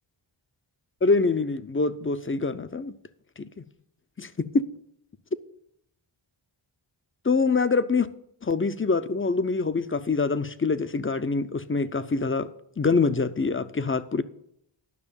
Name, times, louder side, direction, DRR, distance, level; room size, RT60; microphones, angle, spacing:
voice 1, 1.0-3.0 3.4-3.6 4.2-4.7 7.2-8.1 8.4-12.5 12.8-14.2, left 4 dB, 25° left, 0.7 m, -25 dB
11.0 x 6.1 x 7.3 m
wide cardioid pair, 75°, 48 cm